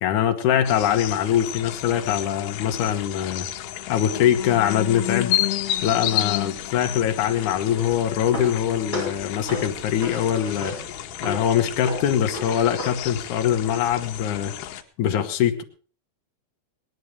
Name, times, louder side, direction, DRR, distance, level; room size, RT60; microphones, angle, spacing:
voice 1, 0.0-3.5 3.9-5.3 5.8-10.8 11.2-14.5 15.0-15.6, left 10 dB, 65° left, 5 dB, 2.3 m, -23 dB
sound 1, 0.7-14.8, left 13 dB, 85° left, 2.8 m, -31 dB
sound 2, 7.6-13.4, left 1 dB, 15° left, 7.2 m, -35 dB
18.0 x 11.0 x 4.9 m, 0.40 s
omnidirectional pair, 4.5 m